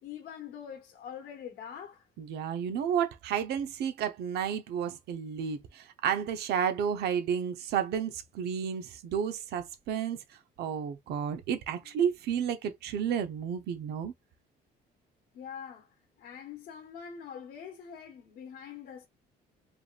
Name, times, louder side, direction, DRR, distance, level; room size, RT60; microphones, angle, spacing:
voice 1, 0.0-2.1 15.3-19.1, left 8 dB, 70° left, 1.3 m, -44 dB
voice 2, 2.2-10.2 10.6-14.1, right 8 dB, 75° right, 1.1 m, -31 dB
4.9 x 3.6 x 2.6 m
cardioid pair, 110°, 17 cm